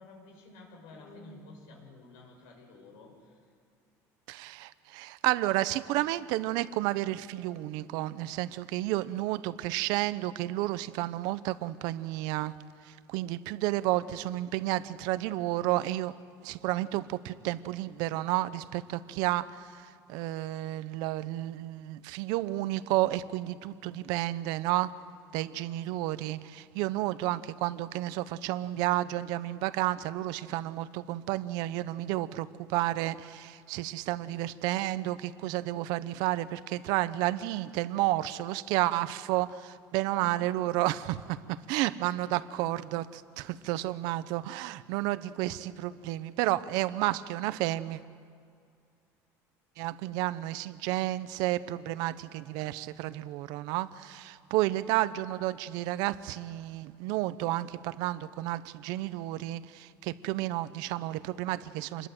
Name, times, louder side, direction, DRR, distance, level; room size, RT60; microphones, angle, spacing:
voice 1, 0.0-3.4 27.5-27.7 40.2-41.0 41.5-41.8 43.3-43.5, left 2 dB, 85° left, 1 dB, 6.9 m, -52 dB
voice 2, 4.3-12.5 12.8-16.1 16.4-24.9 25.3-41.2 41.7-48.0 49.8-62.1, right 16 dB, 80° right, 14 dB, 0.9 m, -31 dB
27.5 x 21.5 x 7.9 m, 2.3 s
cardioid pair, 170°, 7 cm